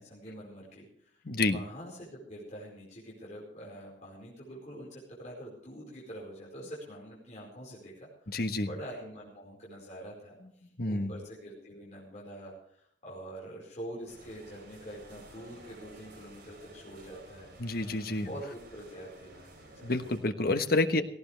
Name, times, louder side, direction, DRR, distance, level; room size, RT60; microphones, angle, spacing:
voice 1, 0.0-10.3 10.9-17.5 18.2-19.9, right 1 dB, 40° left, -5 dB, 4.8 m, -45 dB
voice 2, 1.3-1.6 8.3-8.7 10.8-11.1 17.6-18.3 19.8-21.0, left 2 dB, 60° left, 8 dB, 1.2 m, -28 dB
sound 1, 14.1-20.2, right 1 dB, 65° right, 6.3 m, -52 dB
18.0 x 16.0 x 3.4 m, 0.66 s
head